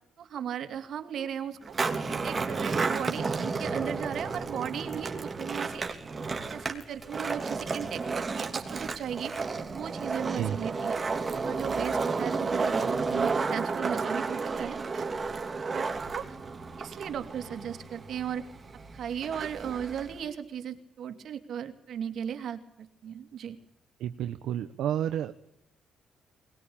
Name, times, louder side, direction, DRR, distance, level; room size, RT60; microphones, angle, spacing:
voice 1, 0.2-1.7 2.1-6.0 6.5-9.3 9.7-11.0 11.4-15.3 15.7-16.3 16.8-18.5 18.9-23.6, right 8 dB, 65° right, 8 dB, 2.6 m, -36 dB
Skateboard, 1.6-20.3, right 4 dB, 30° right, 3.0 m, -32 dB
voice 2, 24.0-25.3, right 10 dB, 80° right, 10 dB, 0.9 m, -30 dB
21.5 x 20.5 x 8.7 m, 0.83 s
cardioid pair, 90°, 0 cm